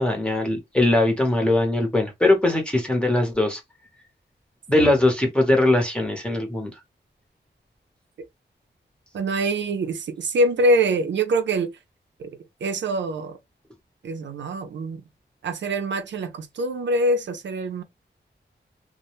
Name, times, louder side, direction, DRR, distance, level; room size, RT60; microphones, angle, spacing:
voice 1, 0.0-3.6 4.7-6.7, left 2 dB, 5° left, 0.8 m, -21 dB
voice 2, 9.1-11.7 12.2-12.3 12.6-13.4 14.0-15.0 15.4-17.8, right 1 dB, 85° right, 0.4 m, -24 dB
2.1 x 2.1 x 2.9 m
wide cardioid pair, 140°, 18 cm